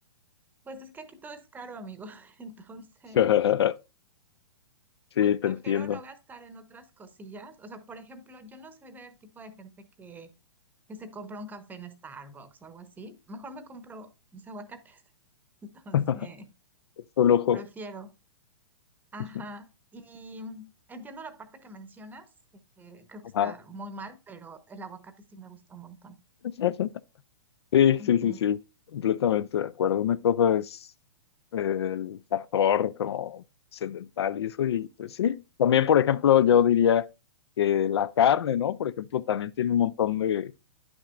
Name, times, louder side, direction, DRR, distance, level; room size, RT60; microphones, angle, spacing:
voice 1, 0.6-3.3 5.2-10.3 10.9-15.0 15.6-16.5 17.5-18.1 19.1-22.3 22.8-26.2 28.0-28.4, right 1 dB, 10° right, 0.8 m, -44 dB
voice 2, 3.2-3.7 5.2-6.0 15.9-16.2 17.2-17.6 23.4-23.5 26.4-26.9 27.7-28.6 28.9-30.8 31.5-33.4 33.8-37.1 37.6-40.5, left 9 dB, 65° left, 0.4 m, -24 dB
10.0 x 6.1 x 2.4 m
hypercardioid pair, 120°, 15 cm